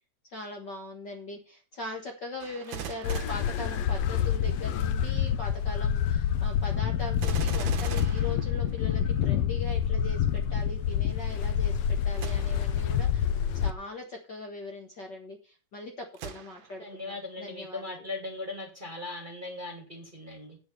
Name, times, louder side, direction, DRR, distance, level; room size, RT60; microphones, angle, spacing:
voice 1, 0.3-11.8 12.0-18.1, left 2 dB, 45° left, 2 dB, 1.7 m, -40 dB
Gunshot gunfire, 2.4-4.4 7.1-9.2 12.1-12.8 13.4-13.5 16.1-16.9 17.5-17.6, right 8 dB, 55° right, 1.5 m, -40 dB
sound 1, 3.0-13.7, left 8 dB, 70° left, 1.8 m, -27 dB
voice 2, 16.8-20.6, left 2 dB, 20° right, 1 dB, 1.9 m, -39 dB
8.8 x 7.3 x 6.8 m, 0.33 s
omnidirectional pair, 3.4 m